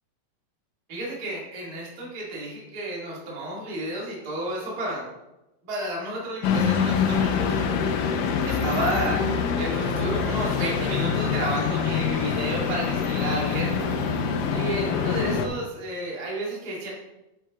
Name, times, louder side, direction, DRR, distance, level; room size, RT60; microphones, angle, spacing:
voice 1, 0.9-5.0 5.6-7.5 8.5-14.0 14.5-16.9, right 1 dB, 30° right, -4 dB, 2.2 m, -32 dB
sound 1, 6.4-15.5, left 6 dB, 80° left, 2.4 m, -25 dB
7.8 x 7.7 x 3.6 m, 0.96 s
omnidirectional pair, 4.0 m